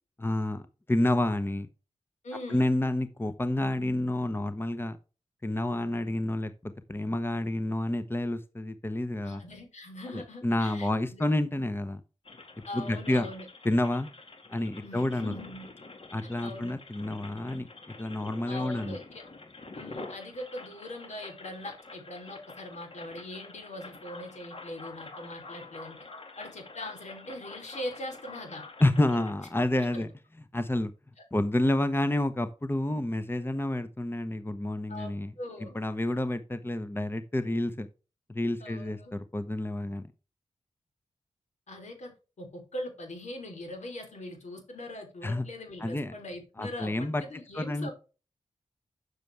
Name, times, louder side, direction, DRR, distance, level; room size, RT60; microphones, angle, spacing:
voice 1, 0.2-0.6 0.9-1.7 2.5-5.0 5.4-9.4 10.1-12.0 12.7-13.3 13.6-14.1 14.5-15.3 16.1-17.7 18.0-19.0 28.8-30.1 30.5-30.9 31.3-35.3 35.7-37.9 38.3-40.1 45.2-45.4 45.8-46.1 46.6-47.2 47.5-47.9, left 1 dB, 20° left, 11 dB, 0.9 m, -29 dB
voice 2, 2.2-2.7 9.2-10.9 12.7-13.5 14.8-15.7 16.2-16.7 18.5-19.2 19.7-26.0 26.4-28.6 29.1-29.3 29.9-30.0 34.9-35.1 35.4-35.8 38.6-39.1 41.7-47.9, left 1 dB, 75° left, 3 dB, 3.5 m, -41 dB
sound 1, 12.2-29.3, left 3 dB, 50° left, 2.0 m, -47 dB
7.9 x 6.8 x 3.4 m, 0.32 s
cardioid pair, 45°, 12 cm